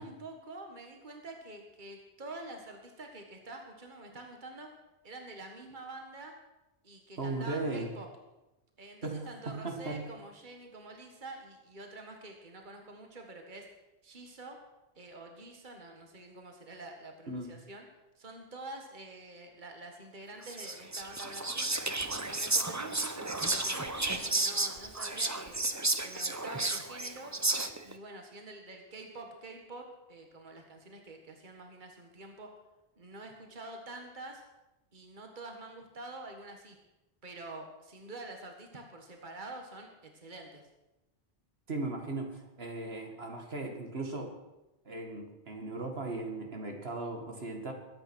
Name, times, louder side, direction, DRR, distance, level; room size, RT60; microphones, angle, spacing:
voice 1, 0.0-4.7 5.0-6.3 6.8-8.1 8.8-13.7 14.0-14.6 15.0-17.9 18.2-21.7 22.2-25.6 26.0-27.3 27.8-32.5 33.0-34.4 34.9-36.8 37.2-40.7, right 2 dB, 50° right, 3 dB, 1.9 m, -47 dB
voice 2, 7.2-7.9 9.0-10.1 17.3-17.5 41.7-44.3 44.9-47.7, right 2 dB, 70° right, 3 dB, 2.3 m, -37 dB
Whispering, 20.4-27.9, right 2 dB, 20° right, 0.8 m, -32 dB
22.5 x 9.0 x 6.3 m, 0.99 s
omnidirectional pair, 1.1 m